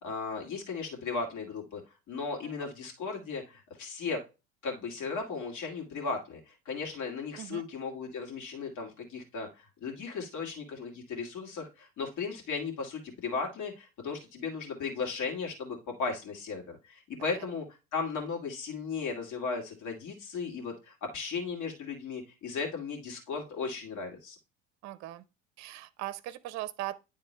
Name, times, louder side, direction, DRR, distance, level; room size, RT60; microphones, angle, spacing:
voice 1, 0.0-1.8 2.1-4.2 4.6-17.6 17.9-24.4, left 4 dB, 55° left, 2.3 m, -36 dB
voice 2, 24.8-25.3 25.6-27.0, right 15 dB, 50° right, 0.7 m, -39 dB
9.9 x 3.7 x 3.2 m
hypercardioid pair, 75°, 35 cm